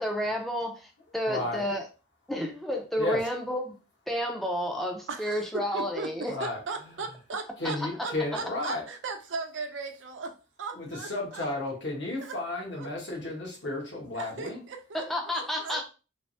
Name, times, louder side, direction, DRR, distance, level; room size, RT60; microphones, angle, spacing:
voice 1, 0.0-1.8 2.3-3.8 4.1-6.4 14.9-15.9, equal, ahead, 0.4 m, -31 dB
voice 2, 1.3-1.7 3.0-3.2 6.3-7.0 7.6-8.8 10.7-14.6, left 2 dB, 70° left, 1.0 m, -33 dB
voice 3, 5.1-7.8 8.0-11.4 12.2-12.3 12.8-12.9 14.2-15.9, right 4 dB, 85° right, 0.5 m, -38 dB
3.2 x 2.0 x 2.6 m
head